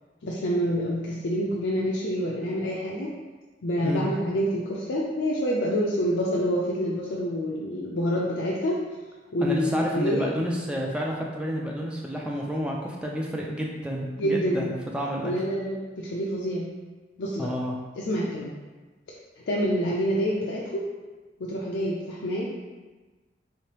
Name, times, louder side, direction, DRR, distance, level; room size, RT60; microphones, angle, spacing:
voice 1, 0.2-3.1 3.6-8.8 9.3-10.3 14.2-14.7 15.2-16.7 17.2-17.5 18.0-18.5 19.4-20.8 21.4-22.5, equal, 85° left, -4 dB, 0.5 m, -27 dB
voice 2, 9.4-15.3 17.4-17.7, equal, 5° right, -2 dB, 0.3 m, -30 dB
3.6 x 3.2 x 2.9 m, 1.3 s
head